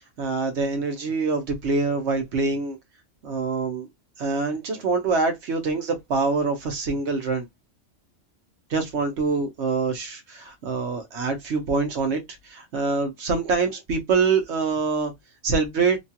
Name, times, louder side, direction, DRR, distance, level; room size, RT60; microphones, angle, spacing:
voice 1, 0.2-2.8 3.2-3.9 4.2-7.4 8.7-15.1 15.4-16.0, right 4 dB, 65° right, 1.0 m, -25 dB
2.9 x 2.3 x 2.8 m
omnidirectional pair, 1.4 m